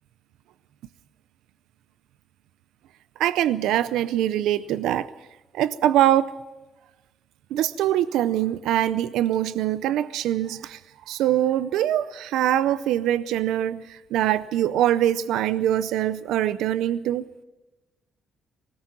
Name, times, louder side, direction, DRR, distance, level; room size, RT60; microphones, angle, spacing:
voice 1, 3.2-5.1 5.5-6.3 7.5-10.8 11.1-17.3, right 12 dB, 90° right, 14 dB, 0.6 m, -23 dB
20.0 x 18.0 x 7.5 m, 1.1 s
cardioid pair, 90°, 0 cm